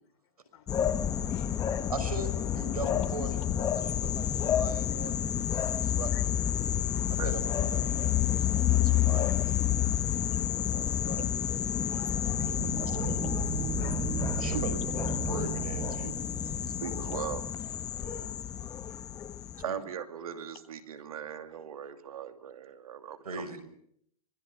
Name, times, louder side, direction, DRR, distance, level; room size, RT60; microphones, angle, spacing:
voice 1, 0.5-1.9 2.8-2.9 6.1-6.2 6.9-7.3 9.2-9.3 10.3-10.6 11.9-13.0 13.8-14.6 19.5-19.6, left 11 dB, 50° left, 11 dB, 3.5 m, -51 dB
sound 1, 0.7-19.6, left 10 dB, 20° left, 1.2 m, -29 dB
voice 2, 1.9-5.2 5.5-6.3 7.2-9.4 10.7-11.2 12.2-13.2 14.4-16.2 18.0-18.3 19.6-19.8 23.2-23.6, right 3 dB, 90° right, 11 dB, 5.8 m, -40 dB
sound 2, 12.6-17.0, right 14 dB, 25° right, 0.9 m, -37 dB
voice 3, 16.6-17.4 19.6-23.6, right 8 dB, 75° right, 8 dB, 2.6 m, -39 dB
25.5 x 22.0 x 7.2 m, 0.70 s
hypercardioid pair, 125°, 19 cm